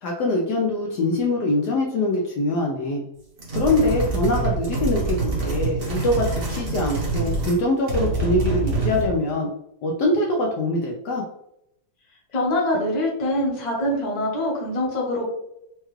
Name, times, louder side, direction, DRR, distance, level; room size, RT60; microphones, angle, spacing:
voice 1, 0.0-3.0 3.5-9.5 9.8-11.2, left 2 dB, 70° left, -1 dB, 1.1 m, -23 dB
sound 1, 3.4-7.6 7.9-9.2, right 3 dB, 40° right, 0.9 m, -25 dB
voice 2, 12.3-15.3, left 1 dB, 30° left, -3 dB, 0.8 m, -24 dB
4.6 x 2.3 x 3.1 m, 0.79 s
omnidirectional pair, 2.1 m